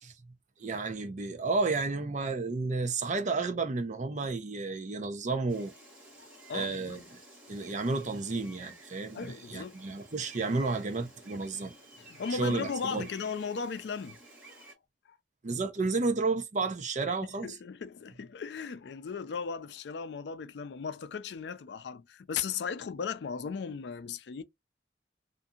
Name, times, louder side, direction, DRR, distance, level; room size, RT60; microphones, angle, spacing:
voice 1, 0.6-5.7 6.5-7.2 7.5-11.7 12.3-13.1 15.4-17.5, right 3 dB, 40° right, 0.5 m, -32 dB
Gull seagull, 5.5-14.7, right 1 dB, 5° right, 1.3 m, -53 dB
voice 2, 6.2-7.0 9.1-9.8 12.0-14.2 14.5-14.6 15.1-15.2 17.1-17.2 17.4-24.4, left 6 dB, 65° left, 0.4 m, -37 dB
2.7 x 2.5 x 2.4 m
head